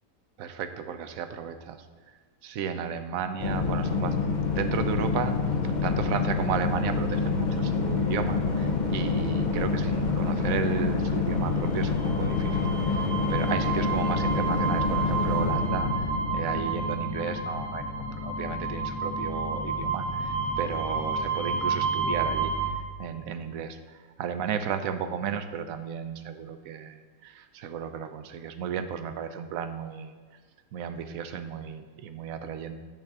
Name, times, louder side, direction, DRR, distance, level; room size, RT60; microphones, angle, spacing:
voice 1, 0.4-1.9 2.4-5.4 5.6-22.6 23.0-30.1 30.7-32.8, right 7 dB, 70° right, 9 dB, 0.8 m, -34 dB
sound 1, 3.4-17.8, left 4 dB, 85° left, 0.4 m, -27 dB
sound 2, 11.7-22.7, right 4 dB, 60° left, 1.2 m, -30 dB
9.2 x 3.6 x 6.7 m, 1.5 s
omnidirectional pair, 1.9 m